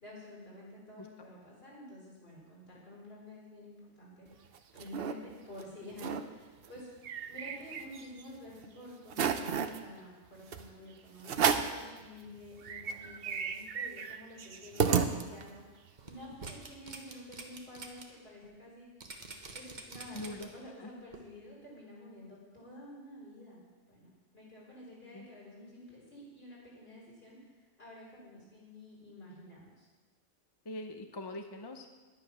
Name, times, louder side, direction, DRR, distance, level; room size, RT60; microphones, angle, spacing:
voice 1, 0.0-4.3 4.7-6.9 7.3-18.9 19.5-23.6 23.9-29.9, left 1 dB, 55° left, -6 dB, 4.7 m, -50 dB
sound 1, 4.3-5.1 5.6-5.7 5.9-6.2 6.6-8.2 8.6-8.7 9.1-9.8 10.5-10.7 11.2-11.8 12.3-12.4 12.6-15.6, right 6 dB, 60° right, 0.9 m, -32 dB
sound 2, 16.0-18.0 18.4-18.5 19.0-20.7 21.1-21.2, right 3 dB, 40° right, 1.3 m, -46 dB
voice 2, 20.1-20.5 20.8-20.9 25.1-25.3 30.7-31.9, left 1 dB, 25° left, 6 dB, 0.6 m, -42 dB
10.5 x 10.0 x 6.0 m, 1.3 s
omnidirectional pair, 1.2 m